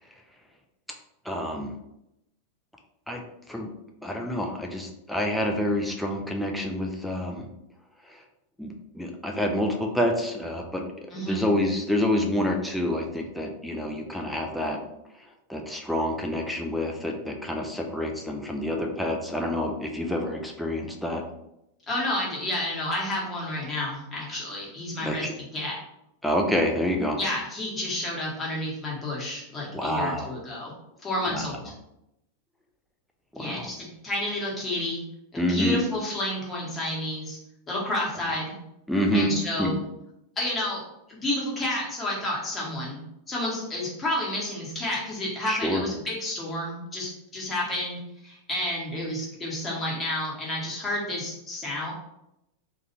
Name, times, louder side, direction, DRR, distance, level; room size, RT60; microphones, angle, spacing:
voice 1, 1.2-1.7 3.1-3.7 4.0-7.5 8.1-8.2 8.6-10.8 11.2-14.8 15.5-21.2 25.0-25.3 26.2-27.2 29.7-30.3 31.3-31.5 33.3-33.7 35.4-35.8 38.9-39.3 39.6-39.7 45.5-45.8, left 1 dB, ahead, 1 dB, 0.4 m, -27 dB
voice 2, 11.1-11.4 21.9-25.7 27.2-30.7 31.0-31.7 33.4-35.0 35.3-37.4 37.7-38.5 39.1-39.8 40.4-40.8 41.1-43.0 43.3-51.9, left 1 dB, 20° left, -4 dB, 1.0 m, -30 dB
2.3 x 2.3 x 3.0 m, 0.84 s
figure-of-eight pair, 90°, 0 cm